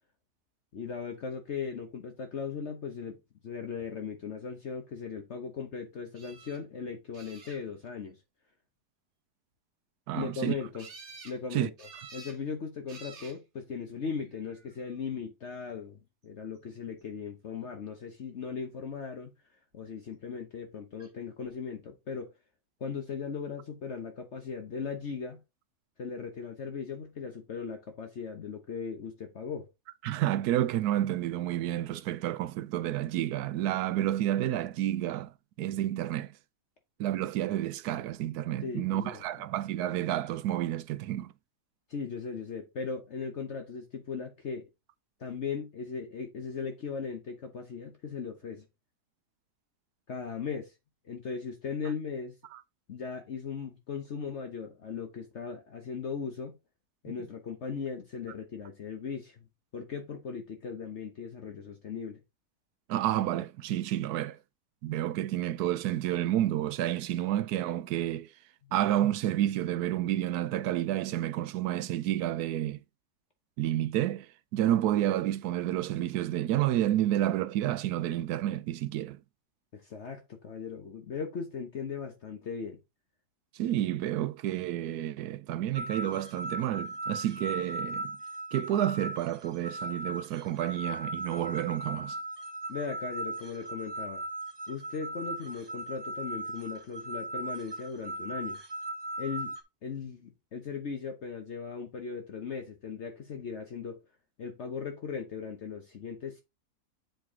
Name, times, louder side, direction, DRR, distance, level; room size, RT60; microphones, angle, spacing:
voice 1, 0.7-3.2 3.4-8.2 10.1-10.9 11.2-19.3 19.7-22.3 22.8-25.4 26.0-29.7 38.6-39.2 41.9-44.6 45.2-48.6 50.1-50.7 51.0-52.3 52.9-56.6 57.0-59.4 59.7-62.2 68.6-68.7 79.7-82.8 92.7-94.2 94.7-98.6 99.2-99.5 99.8-104.0 104.4-106.4, left 6 dB, 50° left, 1.1 m, -38 dB
sound 1, 6.1-6.6 7.1-7.9 10.8-11.4 11.8-12.4 12.9-13.4 14.3-14.8 21.0-21.1 21.4-21.5, right 4 dB, 50° right, 1.4 m, -49 dB
voice 2, 10.1-10.5 11.5-11.7 30.0-35.3 35.6-36.3 37.0-41.3 52.5-52.6 62.9-64.4 64.8-68.3 68.7-72.8 73.6-79.2 83.5-88.1 88.5-92.2, right 13 dB, 80° right, 1.1 m, -30 dB
sound 2, 85.7-99.6, right 2 dB, 20° right, 0.8 m, -38 dB
7.7 x 4.5 x 3.6 m
omnidirectional pair, 1.7 m